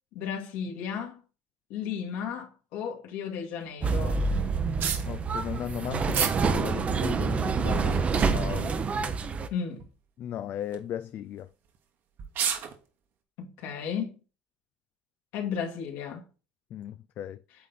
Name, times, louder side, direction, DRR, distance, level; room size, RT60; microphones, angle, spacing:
voice 1, 0.1-1.2 1.7-4.2 9.5-9.8 13.4-14.2 15.3-16.2, left 7 dB, 70° left, 2.1 m, -34 dB
sound 1, 3.8-9.5, right 4 dB, 30° right, 0.8 m, -27 dB
sound 2, 4.8-5.1 6.1-6.4 6.9-7.0 7.8-8.5 9.2-9.5 9.8-9.9 10.6-10.8 11.7-11.8 12.2-12.7, right 8 dB, 50° right, 1.4 m, -30 dB
voice 2, 5.0-8.8 10.2-11.5 16.7-17.4, left 10 dB, 45° left, 0.3 m, -36 dB
8.4 x 3.8 x 4.1 m
supercardioid pair, 100°, 4 cm